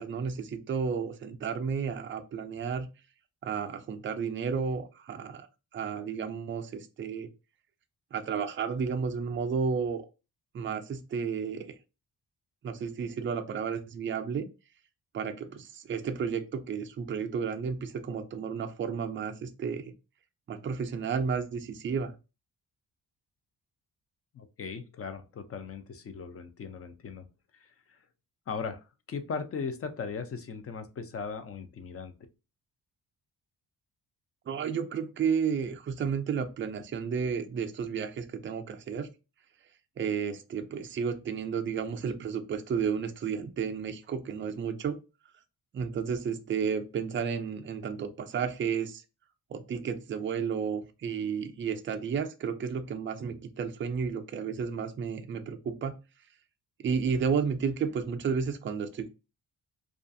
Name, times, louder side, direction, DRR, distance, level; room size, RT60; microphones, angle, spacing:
voice 1, 0.0-2.9 3.4-5.5 5.7-7.3 8.1-10.0 10.5-11.8 12.6-14.5 15.1-19.9 20.5-22.1 34.5-39.1 40.0-45.0 45.7-49.0 49.5-56.0 56.8-59.1, right 6 dB, 30° right, 7 dB, 0.4 m, -32 dB
voice 2, 24.3-27.3 27.5-28.0 28.5-32.1, left 5 dB, 35° left, 9 dB, 0.4 m, -38 dB
2.4 x 2.3 x 2.6 m, 0.29 s
cardioid pair, 90°, 40 cm